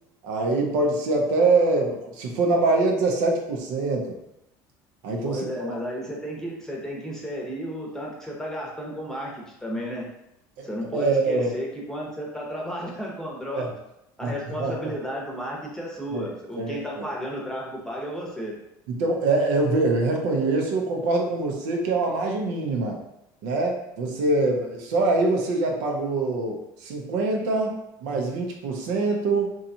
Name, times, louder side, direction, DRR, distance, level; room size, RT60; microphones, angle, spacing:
voice 1, 0.2-4.2 5.0-5.7 10.6-11.5 13.5-13.7 14.2-14.3 14.6-14.7 16.1-16.3 16.6-16.7 17.0-17.1 19.0-23.0 23.4-29.5, right 3 dB, 80° right, 1 dB, 0.6 m, -24 dB
voice 2, 5.2-10.1 10.6-13.7 14.2-18.6, equal, 5° left, -3 dB, 0.8 m, -33 dB
2.8 x 2.3 x 2.7 m, 0.84 s
supercardioid pair, 100°, 10 cm